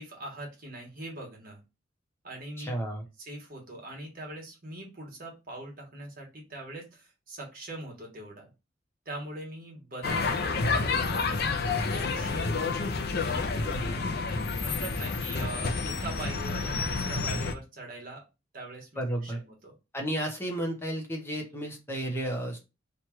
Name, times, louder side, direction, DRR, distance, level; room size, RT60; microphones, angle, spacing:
voice 1, 0.0-1.6 2.2-2.7 3.2-8.5 9.0-12.7 13.2-14.0 14.6-18.2 18.5-19.7, right 1 dB, 45° right, -1 dB, 1.4 m, -42 dB
voice 2, 2.6-3.0 19.0-19.4 19.9-22.6, right 1 dB, 10° left, 1 dB, 0.9 m, -32 dB
sound 1, 10.0-17.5, left 4 dB, 50° left, 0.5 m, -29 dB
3.1 x 2.4 x 4.4 m, 0.27 s
head